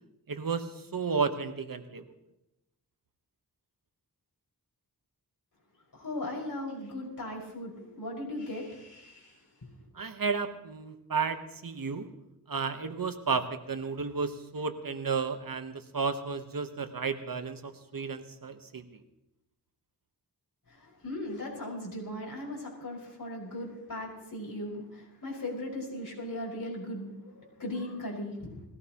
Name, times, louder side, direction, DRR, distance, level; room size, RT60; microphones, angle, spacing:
voice 1, 0.3-2.0 9.9-12.1 12.5-19.0, right 5 dB, 60° right, 8 dB, 1.2 m, -33 dB
voice 2, 5.9-9.4 20.7-28.6, left 1 dB, 55° left, -4 dB, 5.5 m, -38 dB
20.5 x 16.5 x 3.0 m, 0.88 s
wide cardioid pair, 100°, 39 cm